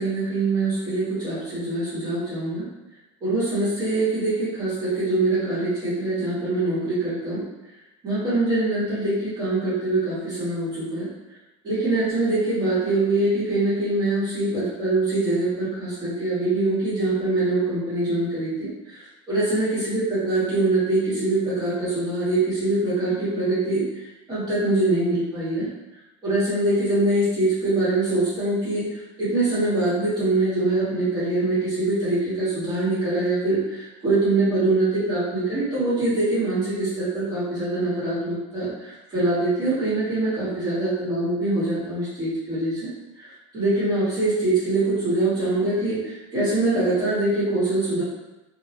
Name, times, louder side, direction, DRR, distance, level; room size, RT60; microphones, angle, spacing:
voice 1, 0.0-2.7 3.2-7.4 8.0-11.1 11.6-23.8 24.3-25.7 26.2-42.9 43.2-48.0, right 2 dB, 25° right, -10 dB, 1.1 m, -24 dB
2.2 x 2.0 x 2.7 m, 1.0 s
cardioid pair, 145°, 15 cm